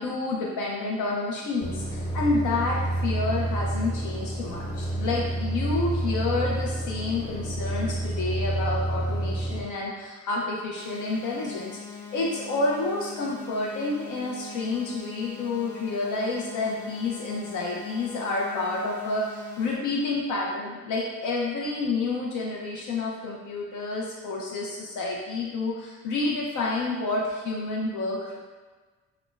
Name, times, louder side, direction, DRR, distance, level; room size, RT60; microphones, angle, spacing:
voice 1, 0.0-28.4, left 3 dB, 75° left, -2 dB, 0.6 m, -29 dB
sound 1, 1.6-9.6, right 1 dB, 35° left, 0.8 m, -29 dB
sound 2, 10.8-19.8, left 6 dB, 10° left, 0.5 m, -42 dB
5.8 x 2.2 x 2.4 m, 1.3 s
cardioid pair, 90°, 30 cm